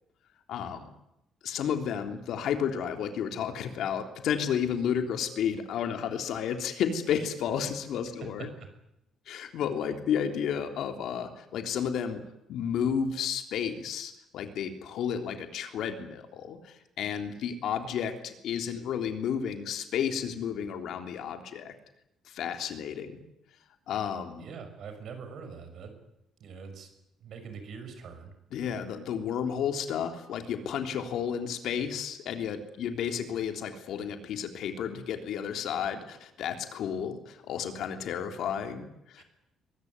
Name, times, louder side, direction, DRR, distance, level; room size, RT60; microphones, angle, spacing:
voice 1, 0.5-0.9 1.4-8.5 9.3-12.2 12.5-21.7 22.3-23.2 23.9-24.5 28.5-39.2, left 8 dB, 60° left, 6 dB, 3.2 m, -32 dB
voice 2, 24.4-25.9 26.4-26.9 27.2-28.3 39.2-39.3, right 5 dB, 50° right, 7 dB, 6.0 m, -43 dB
23.0 x 22.5 x 9.6 m, 0.84 s
cardioid pair, 180°, 0 cm